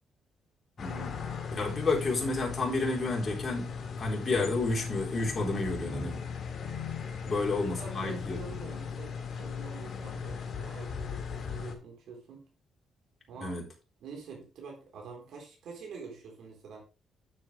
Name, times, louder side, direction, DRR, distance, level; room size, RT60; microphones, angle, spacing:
sound 1, 0.8-11.7, left 6 dB, 50° left, 1.9 m, -38 dB
voice 1, 0.8-1.2 1.6-3.7 4.0-6.2 7.3-8.4 13.4-13.6, left 3 dB, 30° left, 3.7 m, -30 dB
voice 2, 7.8-12.4 13.3-13.6 14.0-16.8, right 4 dB, 75° right, 3.8 m, -46 dB
9.6 x 7.3 x 3.3 m
cardioid pair, 90°, 0 cm